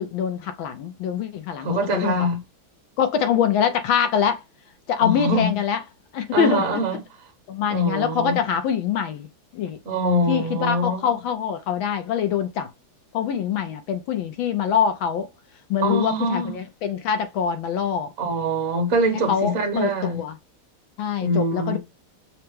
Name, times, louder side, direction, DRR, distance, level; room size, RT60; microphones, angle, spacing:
voice 1, 0.0-2.2 3.0-4.4 4.9-5.8 6.1-6.6 7.5-9.3 9.5-9.8 10.3-12.7 13.1-15.3 15.7-18.1 19.3-20.4 21.0-21.8, left 8 dB, 75° left, 1.3 m, -24 dB
voice 2, 1.6-2.4 5.0-5.6 6.3-7.0 7.7-8.4 9.8-11.1 15.8-16.6 18.2-20.2 21.2-21.8, right 1 dB, 45° right, 1.4 m, -24 dB
5.7 x 2.1 x 3.4 m
omnidirectional pair, 2.4 m